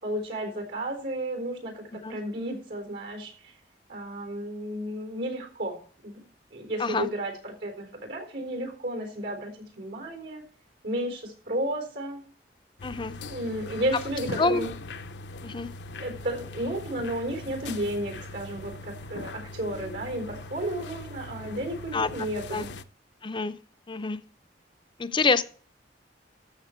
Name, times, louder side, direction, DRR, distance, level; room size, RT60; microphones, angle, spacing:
voice 1, 0.0-3.3 3.9-5.8 6.0-6.2 6.5-10.4 10.8-12.2 13.3-14.7 16.0-22.7, right 1 dB, 75° right, 4 dB, 4.0 m, -33 dB
sound 1, 12.8-22.8, left 2 dB, 80° left, 0.7 m, -40 dB
voice 2, 12.8-13.1 14.4-14.7 15.4-15.7 21.9-22.1 22.5-22.6 23.2-23.5 23.9-24.2 25.0-25.4, left 4 dB, 25° left, 10 dB, 0.5 m, -26 dB
13.5 x 6.6 x 4.4 m, 0.42 s
head